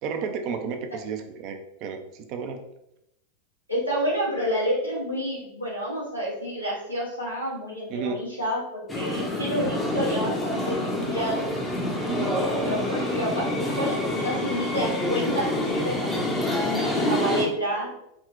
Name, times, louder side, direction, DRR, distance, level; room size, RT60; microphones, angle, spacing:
voice 1, 0.0-2.0 2.3-2.6 7.9-8.2 12.1-12.4, right 6 dB, 45° right, 6 dB, 0.4 m, -31 dB
voice 2, 3.7-11.5 12.1-16.1 16.4-17.9, equal, 90° left, -5 dB, 0.9 m, -29 dB
sound 1, 8.9-17.4, left 1 dB, 15° left, 0.6 m, -27 dB
3.6 x 2.1 x 2.4 m, 0.82 s
figure-of-eight pair, 85°, 0 cm